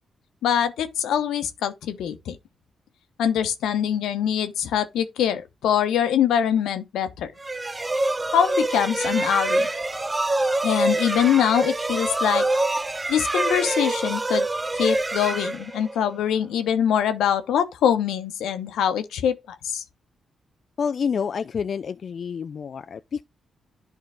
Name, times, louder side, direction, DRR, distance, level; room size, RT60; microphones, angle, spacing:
voice 1, 0.4-2.4 3.2-7.3 8.3-9.7 10.6-12.5 13.1-14.5 14.7-19.3 19.6-19.8, left 9 dB, 90° left, 1.0 m, -23 dB
sound 1, 7.4-16.2, right 2 dB, 20° right, 0.7 m, -25 dB
voice 2, 20.8-23.2, left 6 dB, 55° left, 0.4 m, -28 dB
11.0 x 3.9 x 3.5 m
cardioid pair, 80°, 0 cm